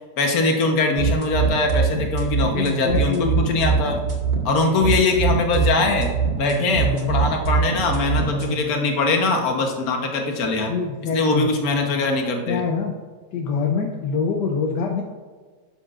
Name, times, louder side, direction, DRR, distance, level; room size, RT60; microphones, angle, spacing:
voice 1, 0.2-4.0 4.4-6.1 6.4-10.7 11.1-12.6, left 3 dB, 55° left, 3 dB, 1.5 m, -22 dB
sound 1, 1.0-8.5, right 6 dB, 65° right, 2.1 m, -23 dB
voice 2, 2.5-3.6 4.7-5.1 6.7-7.2 10.7-11.5 12.5-12.9 13.3-15.0, left 5 dB, 75° left, 2 dB, 1.3 m, -25 dB
11.0 x 6.9 x 2.5 m, 1.4 s
omnidirectional pair, 1.9 m